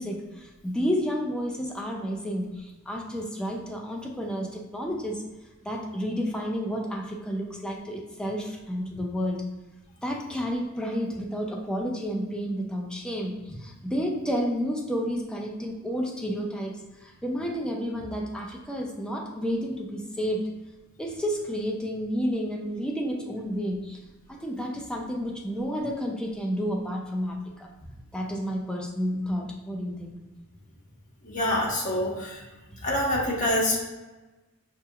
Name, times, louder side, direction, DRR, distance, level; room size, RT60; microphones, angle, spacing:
voice 1, 0.0-5.3 5.6-9.5 10.0-20.5 21.0-24.0 24.3-27.7 28.1-30.1 32.7-32.9, equal, 5° left, 0 dB, 0.4 m, -31 dB
voice 2, 31.2-32.4 32.8-33.8, left 1 dB, 35° left, -4 dB, 1.1 m, -26 dB
5.8 x 2.9 x 2.3 m, 1.1 s
head